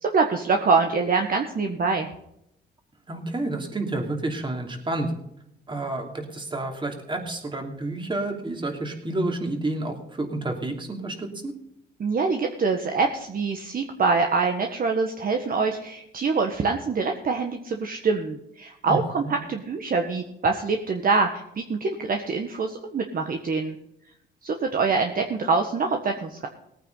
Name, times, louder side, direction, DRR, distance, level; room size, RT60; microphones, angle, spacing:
voice 1, 0.0-2.1 12.0-23.8 24.4-26.5, right 4 dB, 45° right, 3 dB, 1.5 m, -25 dB
voice 2, 3.1-5.1 5.7-11.5 18.9-19.3, right 2 dB, 25° right, 3 dB, 3.0 m, -30 dB
18.0 x 9.3 x 4.1 m, 0.77 s
cardioid pair, 90°, 20 cm